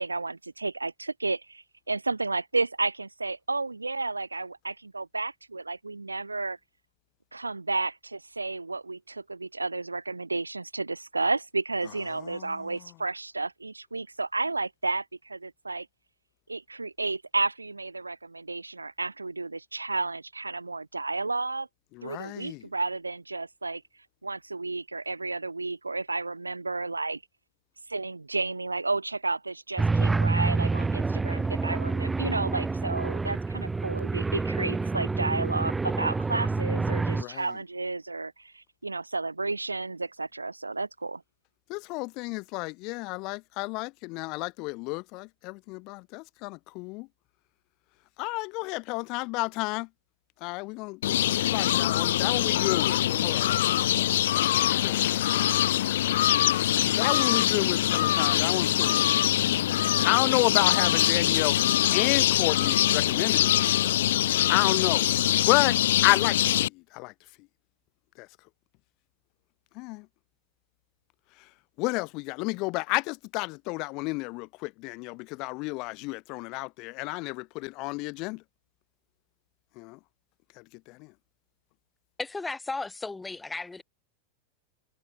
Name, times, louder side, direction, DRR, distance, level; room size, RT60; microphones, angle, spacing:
voice 1, 0.0-6.6 7.3-15.9 16.5-21.7 22.0-23.8 24.2-27.2 27.9-41.2, right 3 dB, 80° right, 0.4 m, -32 dB
voice 2, 12.1-12.9 21.9-22.6 37.1-37.6 41.7-47.1 48.2-49.9 50.4-59.8 60.0-61.6 61.9-65.1 65.4-65.8 66.0-67.1 68.2-68.3 69.7-70.1 71.8-78.4 79.8-80.0 80.6-81.1, left 26 dB, 40° left, 1.4 m, -31 dB
sound 1, 29.8-37.2, right 3 dB, 10° right, 0.4 m, -27 dB
sound 2, 51.0-66.7, left 12 dB, 60° left, 0.4 m, -24 dB
voice 3, 82.2-83.8, left 3 dB, 10° left, 4.2 m, -35 dB
figure-of-eight pair, 90°, 0 cm